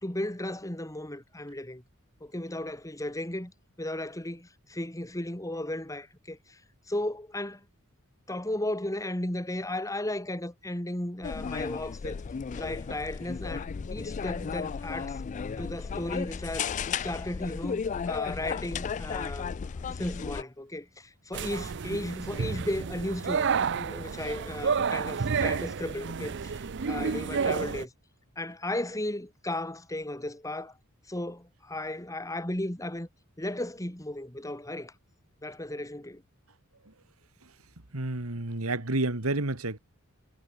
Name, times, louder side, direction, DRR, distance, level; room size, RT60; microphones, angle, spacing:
voice 1, 0.0-1.8 2.2-3.5 3.8-6.6 6.9-7.6 8.3-12.2 12.5-15.2 15.6-27.9 28.4-30.7 31.1-33.1 33.4-34.9 35.4-36.2, left 1 dB, 15° left, 2.5 m, -35 dB
sound 1, 11.2-20.4, left 6 dB, 35° left, 0.3 m, -34 dB
sound 2, 21.3-27.8, right 6 dB, 55° right, 0.6 m, -30 dB
voice 2, 37.9-39.8, right 2 dB, 75° right, 2.4 m, -30 dB
head